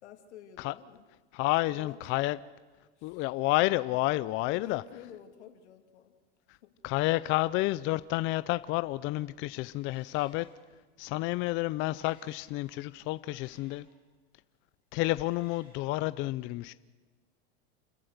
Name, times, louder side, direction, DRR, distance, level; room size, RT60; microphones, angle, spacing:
voice 1, 0.0-1.0 1.7-2.0 3.0-3.2 4.5-6.1 6.6-6.8 11.1-11.3, left 10 dB, 85° left, 6 dB, 2.7 m, -50 dB
voice 2, 1.3-2.4 3.0-4.8 6.8-10.5 11.0-13.9 14.9-16.7, left 18 dB, 35° left, 16 dB, 0.5 m, -30 dB
Male speech man speaking, 9.7-10.6 11.5-14.0 14.9-15.8, left 1 dB, 15° right, 7.9 m, -64 dB
29.0 x 14.0 x 6.7 m, 1.4 s
supercardioid pair, 135°, 33 cm